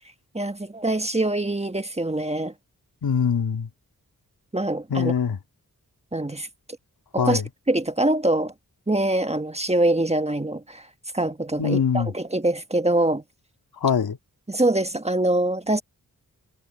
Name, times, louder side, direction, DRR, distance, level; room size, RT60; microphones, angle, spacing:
voice 1, 0.3-2.5 4.5-5.1 6.1-6.5 7.1-7.4 7.7-8.5 8.9-10.9 11.1-13.2 14.5-15.8, right 1 dB, 15° right, 1.4 m, -24 dB
voice 2, 3.0-3.7 4.9-5.4 7.2-7.4 11.6-12.1 13.8-14.2, left 7 dB, 85° left, 2.1 m, -23 dB
cardioid pair, 55°, 36 cm